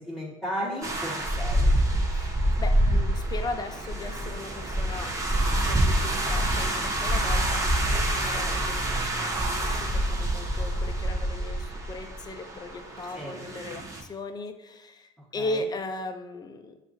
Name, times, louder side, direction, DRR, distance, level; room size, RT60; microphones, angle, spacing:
voice 1, 0.0-1.7 2.1-2.3 13.1-13.4 15.3-15.6, equal, ahead, -10 dB, 1.3 m, -35 dB
sound 1, 0.8-14.0, right 1 dB, 20° right, 0.8 m, -26 dB
voice 2, 2.2-5.1 5.5-16.7, left 2 dB, 25° left, 7 dB, 0.5 m, -37 dB
6.9 x 2.4 x 2.6 m, 0.97 s
hypercardioid pair, 85°, 17 cm